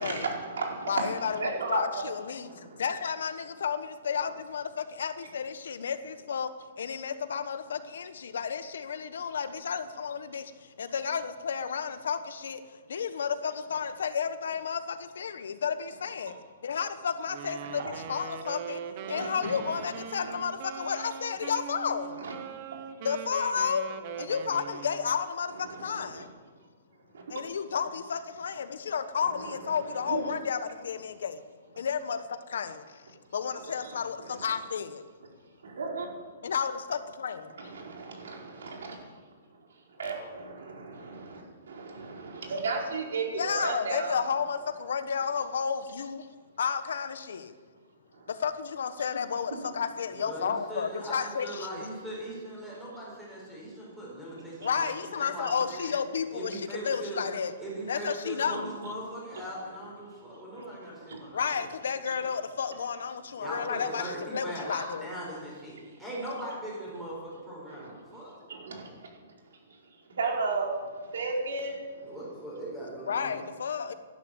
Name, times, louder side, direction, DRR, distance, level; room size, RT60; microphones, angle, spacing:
voice 1, 0.0-2.1 2.4-2.8 9.2-9.3 16.3-16.4 17.8-18.0 19.0-19.9 20.2-20.3 22.2-22.3 22.7-23.0 25.5-26.2 27.1-27.2 29.2-30.3 33.6-34.6 35.6-36.1 37.6-39.0 39.5-44.3 48.1-48.3 49.5-49.7 54.3-54.7 58.4-58.9 59.3-59.4 60.3-60.6 61.0-61.2 62.1-62.3 63.9-64.0 65.8-66.0 67.7-72.1, right 4 dB, 80° right, 0 dB, 4.7 m, -36 dB
voice 2, 0.9-2.5 2.8-6.5 6.8-16.3 16.6-18.8 19.1-22.2 23.0-26.3 27.3-31.4 31.8-33.0 33.3-35.0 36.4-37.7 40.2-40.3 43.4-46.3 46.6-47.6 48.3-51.8 54.6-57.5 57.9-58.7 61.3-65.1 73.1-73.9, left 6 dB, 75° left, 11 dB, 1.1 m, -32 dB
Wind instrument woodwind instrument, 17.3-25.2, right 8 dB, 30° right, 0.9 m, -41 dB
voice 3, 50.1-55.9 56.3-57.3 57.6-61.4 63.4-68.3 72.0-73.4, right 1 dB, 5° right, -6 dB, 4.5 m, -39 dB
12.5 x 11.5 x 9.0 m, 1.5 s
hypercardioid pair, 175°, 0 cm